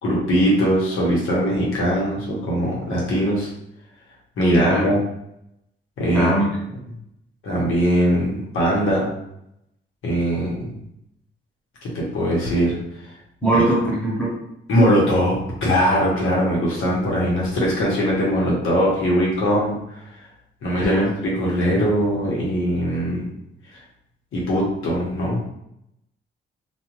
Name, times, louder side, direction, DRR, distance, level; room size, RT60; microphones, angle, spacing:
voice 1, 0.0-3.5 4.4-5.0 6.0-6.3 7.4-9.1 10.0-10.6 11.8-12.8 13.5-13.6 14.7-15.3 15.6-19.8 20.6-23.3 24.3-25.4, equal, 90° left, -4 dB, 1.1 m, -20 dB
voice 2, 4.6-4.9 6.1-6.5 13.4-14.4 20.8-21.1, right 1 dB, 5° left, -5 dB, 0.8 m, -21 dB
2.5 x 2.4 x 3.0 m, 0.79 s
wide cardioid pair, 160°, 20 cm